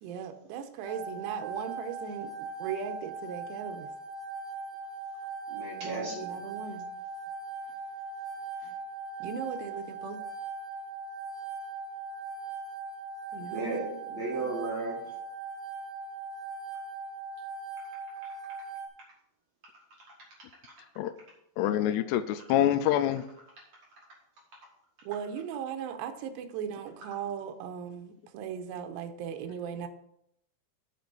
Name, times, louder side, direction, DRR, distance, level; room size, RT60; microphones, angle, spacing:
voice 1, 0.0-3.9 5.8-6.9 9.2-10.2 13.3-13.9 14.3-14.6 25.0-29.9, right 8 dB, 80° right, 6 dB, 2.8 m, -38 dB
sound 1, 0.8-18.9, right 4 dB, 30° right, 2.1 m, -40 dB
voice 2, 5.5-6.4 8.6-8.7 13.4-15.1, right 3 dB, 50° right, -4 dB, 2.4 m, -35 dB
voice 3, 21.6-23.2, left 11 dB, 85° left, 9 dB, 2.4 m, -26 dB
7.8 x 5.4 x 6.9 m, 0.75 s
omnidirectional pair, 5.3 m